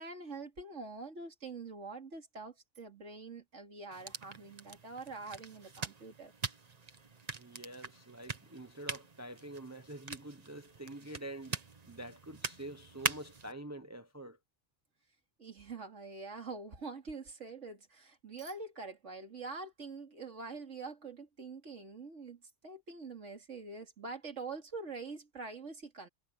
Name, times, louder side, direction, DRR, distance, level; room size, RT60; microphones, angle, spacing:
voice 1, 0.0-6.3 15.4-26.1, right 4 dB, 80° right, 2.9 m, -45 dB
sound 1, 3.9-13.5, right 4 dB, 35° right, 1.2 m, -43 dB
voice 2, 7.4-11.6 11.9-14.4, right 1 dB, 15° right, 1.0 m, -46 dB
omnidirectional pair, 1.2 m